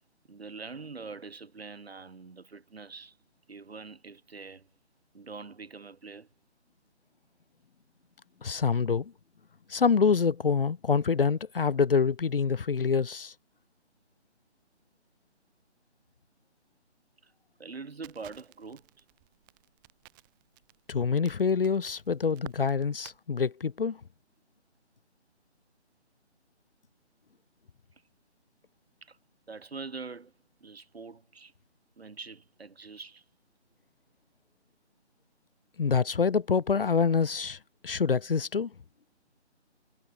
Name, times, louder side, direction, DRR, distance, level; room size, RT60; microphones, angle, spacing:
voice 1, 0.3-3.2 3.5-4.7 5.1-6.3 17.2-17.3 17.6-19.0 29.0-29.2 29.5-30.3 30.6-31.5 32.0-33.2, right 4 dB, 60° right, 5.6 m, -44 dB
voice 2, 8.4-9.1 9.7-13.3 20.9-24.0 35.8-37.6 37.8-38.7, left 5 dB, 55° left, 0.8 m, -26 dB
Crackle, 18.0-23.2, right 22 dB, 20° right, 5.7 m, -53 dB
figure-of-eight pair, 155°, 34 cm